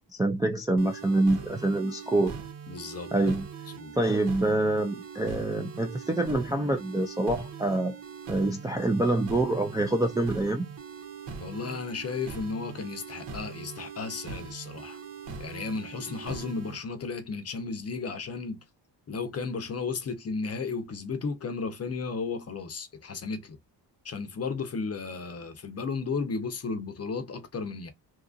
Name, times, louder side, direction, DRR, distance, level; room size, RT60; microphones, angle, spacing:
voice 1, 0.1-2.3 3.1-3.5 3.9-8.0 8.3-10.6, right 2 dB, 10° right, 0.3 m, -26 dB
sound 1, 0.8-16.8, right 5 dB, 70° right, 1.1 m, -41 dB
voice 2, 2.7-3.3 3.7-4.0 11.4-15.0 15.4-18.6 19.1-23.6 24.0-27.9, left 4 dB, 35° left, 0.6 m, -34 dB
2.8 x 2.4 x 2.4 m
cardioid pair, 115°, 44 cm